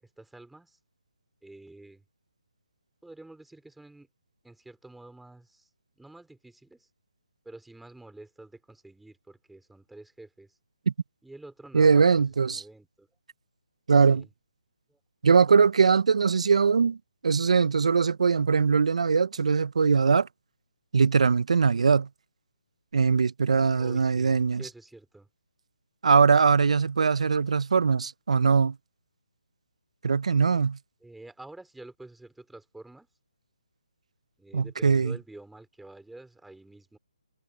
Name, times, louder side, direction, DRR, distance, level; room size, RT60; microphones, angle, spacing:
voice 1, 0.0-0.8 1.4-2.0 3.0-4.1 4.4-5.7 6.0-6.9 7.4-10.6 11.2-13.1 14.1-14.3 14.9-15.0 23.7-25.3 31.0-33.1 34.4-37.0, right 2 dB, ahead, 5.0 m, -48 dB
voice 2, 11.7-12.6 13.9-14.2 15.2-17.0 17.2-20.3 20.9-22.1 22.9-24.6 26.0-28.8 30.0-30.8 34.5-35.2, right 5 dB, 65° right, 0.8 m, -21 dB
hypercardioid pair, 155°, 4 cm